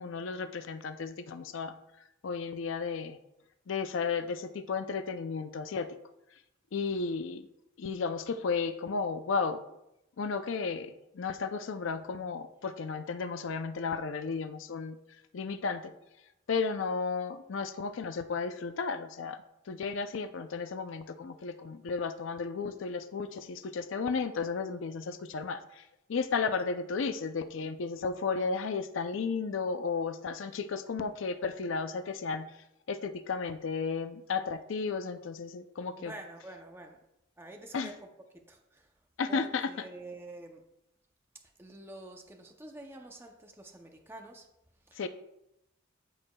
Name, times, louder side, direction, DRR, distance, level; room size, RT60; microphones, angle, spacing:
voice 1, 0.0-1.8 2.2-3.2 3.7-6.0 6.7-7.5 7.8-9.6 10.2-15.0 15.3-15.9 16.5-32.6 32.9-36.1 37.7-37.9 39.2-39.7 45.0-45.1, left 5 dB, 70° left, 10 dB, 0.5 m, -34 dB
voice 2, 36.0-37.0 37.4-38.1 38.3-38.9 39.3-40.6 41.6-44.5 44.9-45.0, right 2 dB, 10° right, 3 dB, 0.5 m, -47 dB
12.5 x 4.8 x 2.2 m, 0.85 s
head